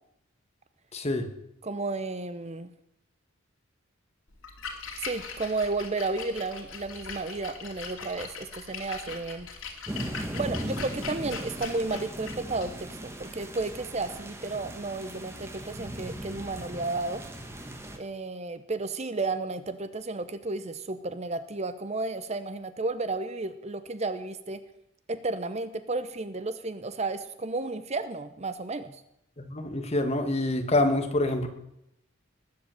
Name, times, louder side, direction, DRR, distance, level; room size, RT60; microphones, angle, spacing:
voice 1, 0.9-1.3 29.4-31.5, left 2 dB, 30° left, 6 dB, 1.5 m, -26 dB
voice 2, 1.6-2.7 5.0-9.5 10.3-17.2 18.0-24.6 25.1-29.0, right 3 dB, 30° right, 12 dB, 0.7 m, -32 dB
Splash splatter, 4.3-14.2, left 5 dB, 85° left, 2.7 m, -41 dB
sound 1, 9.9-18.0, right 1 dB, 15° right, 1.4 m, -38 dB
20.5 x 7.7 x 7.7 m, 0.81 s
head